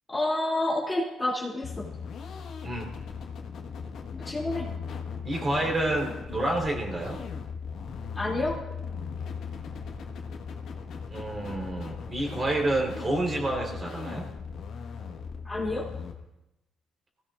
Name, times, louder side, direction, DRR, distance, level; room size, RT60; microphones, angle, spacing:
voice 1, 0.1-1.9 4.1-4.7 8.1-8.6 15.4-15.9, left 2 dB, 20° left, -4 dB, 3.1 m, -29 dB
sound 1, 1.6-16.1, left 5 dB, 75° left, 1.7 m, -38 dB
voice 2, 5.2-7.2 11.1-14.3, right 1 dB, 30° right, 0 dB, 4.4 m, -29 dB
21.5 x 16.5 x 2.7 m, 0.94 s
cardioid pair, 90°, 0 cm